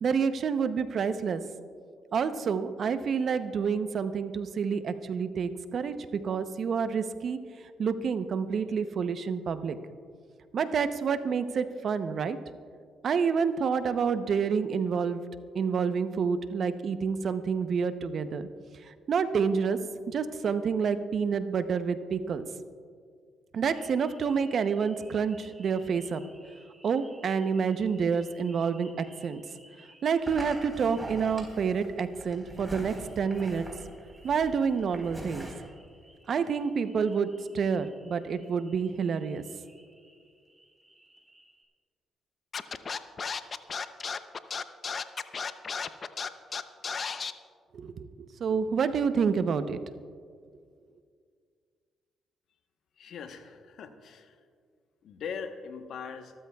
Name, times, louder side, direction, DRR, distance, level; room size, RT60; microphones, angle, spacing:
voice 1, 0.0-1.4 2.1-5.9 6.2-7.4 7.8-9.8 10.5-12.4 13.0-15.2 15.5-18.5 19.1-19.8 20.1-22.4 23.5-26.2 26.8-29.4 30.0-33.6 34.2-35.5 36.3-37.3 37.5-39.4 47.7-49.8, right 6 dB, 60° right, 10 dB, 0.8 m, -28 dB
sound 1, 23.7-41.6, right 1 dB, 15° right, 4.4 m, -48 dB
Scratching (performance technique), 42.5-47.3, left 5 dB, 45° left, 0.7 m, -34 dB
voice 2, 53.0-54.4 55.0-56.3, left 6 dB, 70° left, 7 dB, 1.0 m, -40 dB
25.0 x 13.5 x 2.4 m, 2.1 s
supercardioid pair, 60°, 0 cm